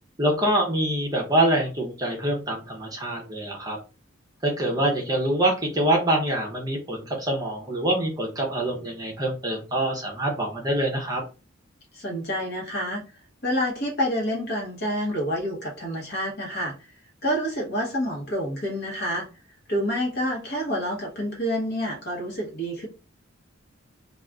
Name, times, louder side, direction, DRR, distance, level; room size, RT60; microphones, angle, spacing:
voice 1, 0.2-3.8 4.4-11.2, right 1 dB, 20° right, 0 dB, 0.6 m, -25 dB
voice 2, 11.9-13.0 13.4-16.7 17.2-19.3 19.7-22.9, equal, 50° left, -1 dB, 1.0 m, -28 dB
2.4 x 2.3 x 3.3 m, 0.33 s
head